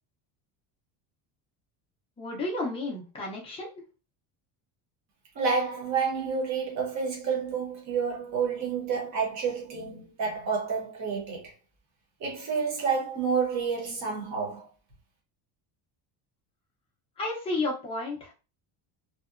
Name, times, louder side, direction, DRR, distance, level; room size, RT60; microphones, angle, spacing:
voice 1, 2.2-3.7 17.2-18.3, left 2 dB, 15° left, 0.4 m, -32 dB
voice 2, 5.3-11.5 12.2-14.7, right 5 dB, 35° right, 0.8 m, -29 dB
2.8 x 2.1 x 2.4 m
cardioid pair, 175°, 48 cm